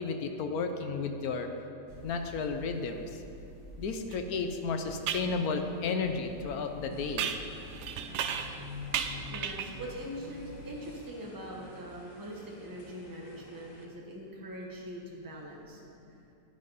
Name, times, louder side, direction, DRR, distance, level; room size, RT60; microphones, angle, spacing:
voice 1, 0.0-1.5 2.0-3.0 3.8-7.3, left 4 dB, 65° left, 6 dB, 1.2 m, -33 dB
sound 1, 1.9-10.8, left 2 dB, 75° right, 2.8 m, -47 dB
sound 2, 4.1-4.2 5.1-5.3 7.2-8.6 8.9-9.8, right 8 dB, 90° right, 0.6 m, -34 dB
sound 3, 6.9-13.9, left 2 dB, 35° left, 0.8 m, -53 dB
voice 2, 9.3-15.8, right 1 dB, 15° right, -2 dB, 1.2 m, -42 dB
10.5 x 10.0 x 4.1 m, 2.7 s
omnidirectional pair, 1.8 m